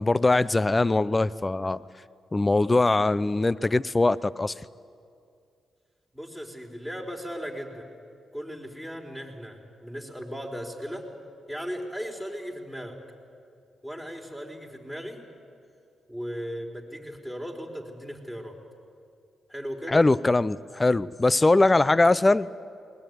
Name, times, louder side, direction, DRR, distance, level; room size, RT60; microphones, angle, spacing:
voice 1, 0.0-1.8 2.3-4.5 19.9-22.5, left 2 dB, 25° left, 19 dB, 0.6 m, -21 dB
voice 2, 6.1-7.9 8.3-11.1 11.5-13.0 13.8-15.2 16.1-18.6 19.5-20.0, equal, 5° left, 2 dB, 4.4 m, -37 dB
20.5 x 20.0 x 9.5 m, 2.4 s
supercardioid pair, 60°, 0 cm